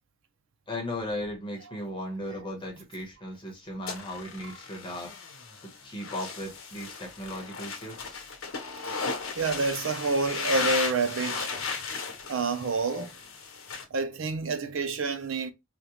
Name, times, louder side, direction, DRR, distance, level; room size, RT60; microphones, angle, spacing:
voice 1, 0.7-5.1 5.6-8.2 11.5-11.6 12.9-13.0, left 1 dB, 25° left, 1.1 m, -37 dB
sound 1, 3.9-13.8, left 5 dB, 85° left, 0.9 m, -36 dB
voice 2, 9.4-11.6 12.3-13.1 13.9-15.5, right 3 dB, 70° right, 0.6 m, -28 dB
3.6 x 2.4 x 2.9 m
head